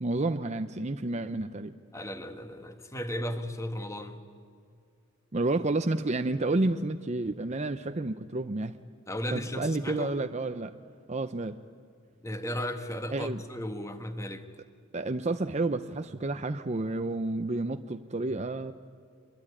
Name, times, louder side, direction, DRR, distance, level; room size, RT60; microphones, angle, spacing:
voice 1, 0.0-1.7 5.3-8.8 9.3-10.7 11.1-11.6 13.1-13.4 14.9-18.7, right 2 dB, 35° right, 8 dB, 0.7 m, -30 dB
voice 2, 1.9-4.2 9.1-10.1 12.2-14.5, equal, 15° left, 7 dB, 1.7 m, -35 dB
25.5 x 22.0 x 9.8 m, 2.3 s
head